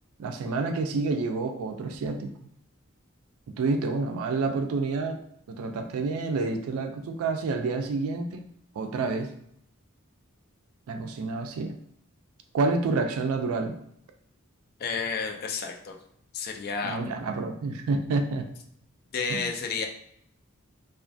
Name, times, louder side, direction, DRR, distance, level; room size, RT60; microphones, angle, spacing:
voice 1, 0.2-2.3 3.6-5.2 5.5-8.5 8.8-9.3 10.9-11.8 12.5-13.7 16.8-18.5 19.3-19.5, right 3 dB, 75° right, 5 dB, 0.3 m, -28 dB
voice 2, 14.8-16.0 16.3-17.0 19.1-19.9, left 5 dB, 45° left, 3 dB, 0.3 m, -31 dB
2.4 x 2.3 x 2.5 m, 0.71 s
head